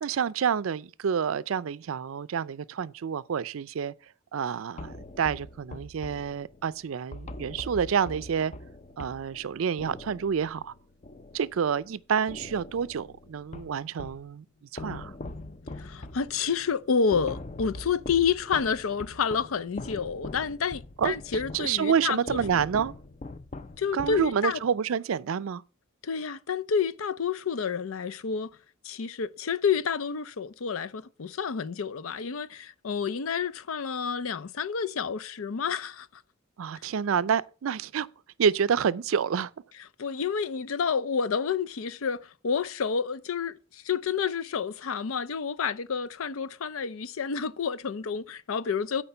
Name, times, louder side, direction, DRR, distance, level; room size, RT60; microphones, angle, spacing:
voice 1, 0.0-3.9 4.3-8.5 9.0-10.7 11.3-14.5 14.7-15.1 21.0-21.2 21.5-22.9 23.9-25.6 36.6-38.1 38.4-39.5, right 7 dB, 80° right, 0.4 m, -28 dB
sound 1, 4.8-11.9 12.3-14.3 14.8-24.7, left 2 dB, 35° left, 0.5 m, -42 dB
voice 2, 15.8-22.6 23.8-24.6 26.0-28.5 28.8-36.1 40.0-49.0, left 6 dB, 90° left, 0.5 m, -29 dB
8.7 x 4.5 x 6.8 m
head